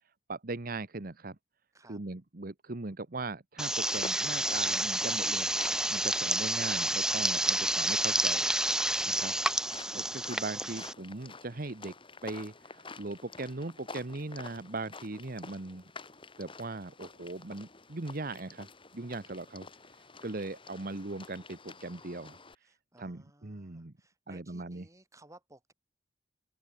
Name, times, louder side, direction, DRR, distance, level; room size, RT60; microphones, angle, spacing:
voice 1, 0.3-1.4 1.9-5.5 5.9-8.5 9.1-9.3 9.9-11.9 12.2-15.8 16.4-18.7 18.9-19.7 20.2-22.4 23.0-23.9 24.3-24.8, right 2 dB, 55° right, 1.2 m, -39 dB
sound 1, 3.6-10.9, right 1 dB, 5° right, 0.3 m, -30 dB
sound 2, 3.7-22.5, left 3 dB, 30° left, 5.0 m, -50 dB
voice 2, 19.2-19.8 22.6-25.7, right 2 dB, 20° right, 5.8 m, -60 dB
open air
head